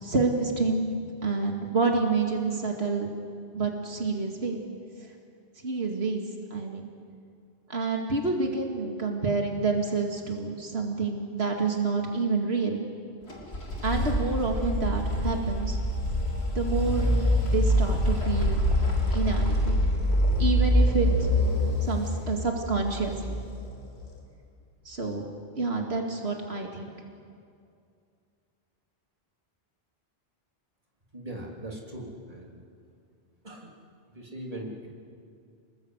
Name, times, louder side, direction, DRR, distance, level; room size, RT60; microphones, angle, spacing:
voice 1, 0.0-0.9 1.2-3.1 3.5-4.6 5.6-6.2 6.5-6.9 7.7-12.8 13.8-15.8 16.6-17.1 17.5-18.6 19.1-19.8 20.4-21.1 21.8-23.1 24.9-25.3 25.6-26.9, right 4 dB, 85° right, 2 dB, 2.5 m, -28 dB
sound 1, 13.3-24.1, equal, 90° left, 3.6 m, -25 dB
voice 2, 31.1-32.6 33.4-33.8 34.1-34.9, right 1 dB, 35° right, -1 dB, 3.7 m, -40 dB
28.5 x 20.5 x 8.2 m, 2.3 s
omnidirectional pair, 1.0 m